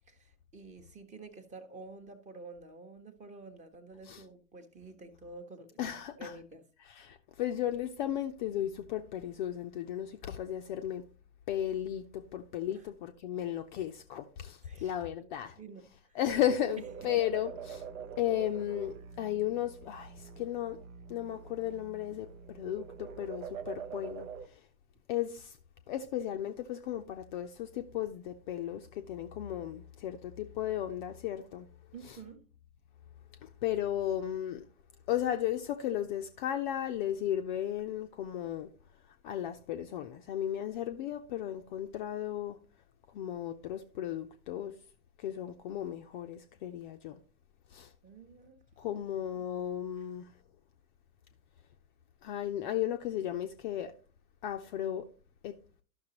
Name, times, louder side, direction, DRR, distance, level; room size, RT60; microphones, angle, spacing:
voice 1, 0.1-6.7 12.7-12.9 14.6-16.2 17.0-17.1 31.9-32.5 48.0-48.6 48.9-49.0, right 3 dB, 15° right, 0.9 m, -50 dB
voice 2, 5.8-6.3 6.9-11.0 11.5-15.6 16.1-17.8 18.2-20.8 21.1-24.6 25.1-25.6 25.9-31.7 33.4-34.7 35.1-38.7 39.2-42.6 43.1-44.7 45.2-47.2 47.7-47.9 48.8-50.3 52.2-53.9 54.4-55.1 55.4-55.5, left 11 dB, 35° left, 0.5 m, -35 dB
sound 1, 16.3-24.5, right 7 dB, 60° right, 0.8 m, -45 dB
12.5 x 6.0 x 2.9 m
figure-of-eight pair, 100°, 45 cm